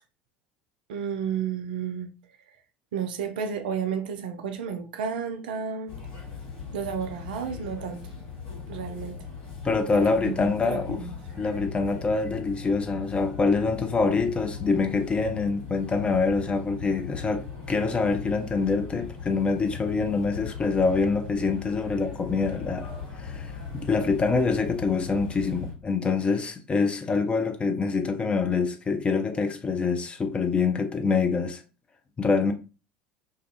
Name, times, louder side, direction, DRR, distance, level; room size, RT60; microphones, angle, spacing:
voice 1, 0.9-2.1 2.9-5.9 6.7-8.0 8.7-9.2 9.9-11.2, right 7 dB, 65° right, 0.4 m, -32 dB
sound 1, 5.9-25.7, left 6 dB, 65° left, 1.4 m, -39 dB
voice 2, 9.6-11.0 11.4-22.9 23.2-31.6 32.2-32.5, left 4 dB, 20° left, 0.4 m, -25 dB
2.3 x 2.3 x 2.6 m
figure-of-eight pair, 70°, 5 cm